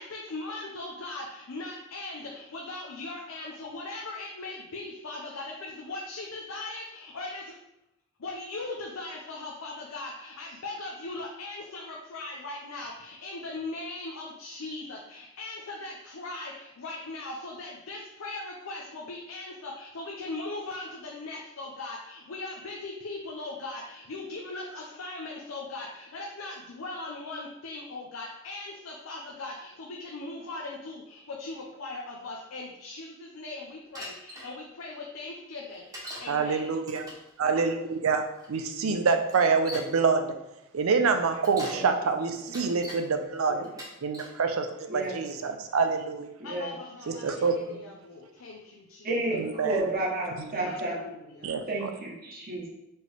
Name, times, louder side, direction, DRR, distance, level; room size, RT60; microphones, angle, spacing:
voice 1, 0.0-7.6 8.2-36.7 46.4-49.2 50.5-51.5, left 2 dB, 85° left, -1 dB, 0.6 m, -39 dB
Bicycle, 33.9-34.5 35.9-36.3 36.8-37.3 38.4-38.5 39.3-40.0 41.3-41.8 42.3-43.0 43.6-44.4 45.0-45.4, equal, 20° right, 0.9 m, -42 dB
voice 2, 36.3-37.0 37.4-37.7 38.0-38.2 38.5-40.3 40.7-43.6 44.0-44.7 44.9-46.3 47.1-47.5 49.3-49.9 50.4-50.7 51.4-51.9, right 5 dB, 80° right, 6 dB, 0.5 m, -26 dB
voice 3, 46.4-46.7 49.0-51.0 51.7-52.7, right 2 dB, 45° right, -3 dB, 1.0 m, -31 dB
4.3 x 3.2 x 3.4 m, 0.88 s
head